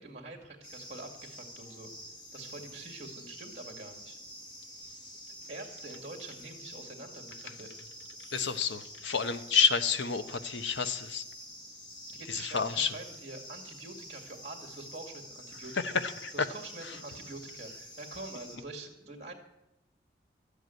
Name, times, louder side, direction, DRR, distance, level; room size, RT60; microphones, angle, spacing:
voice 1, 0.0-1.9 2.3-4.2 5.3-7.7 12.1-16.0 16.3-19.3, right 2 dB, 35° right, 1 dB, 2.1 m, -45 dB
sound 1, 0.6-18.6, equal, 25° left, 2.1 m, -48 dB
voice 2, 8.3-11.3 12.3-12.9 15.8-16.5 16.8-17.0, left 6 dB, 80° left, 11 dB, 0.9 m, -29 dB
12.5 x 8.2 x 9.2 m, 0.91 s
head